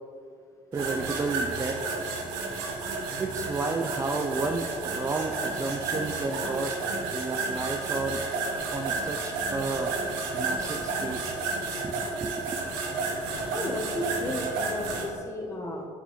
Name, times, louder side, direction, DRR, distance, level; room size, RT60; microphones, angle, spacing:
voice 1, 0.7-2.2 3.2-6.8 7.1-8.2 8.7-10.0 10.3-11.4 11.8-12.6, right 3 dB, 25° right, 4 dB, 0.4 m, -32 dB
sound 1, 0.7-15.1, right 3 dB, 85° right, 0.9 m, -31 dB
voice 2, 13.5-15.9, left 1 dB, 20° left, -1 dB, 1.3 m, -33 dB
6.8 x 5.4 x 3.1 m, 2.3 s
supercardioid pair, 70°, 14 cm